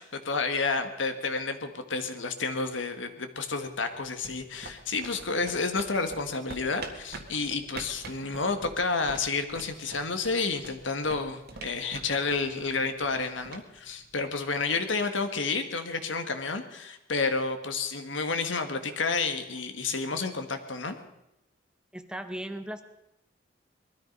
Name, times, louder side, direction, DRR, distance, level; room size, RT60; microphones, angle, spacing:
voice 1, 0.0-20.9, left 4 dB, 85° left, 8 dB, 1.5 m, -30 dB
sound 1, 3.9-14.6, right 3 dB, 55° right, 1.7 m, -46 dB
voice 2, 21.9-22.8, right 1 dB, 5° right, 8 dB, 1.0 m, -37 dB
20.5 x 13.5 x 5.3 m, 0.88 s
head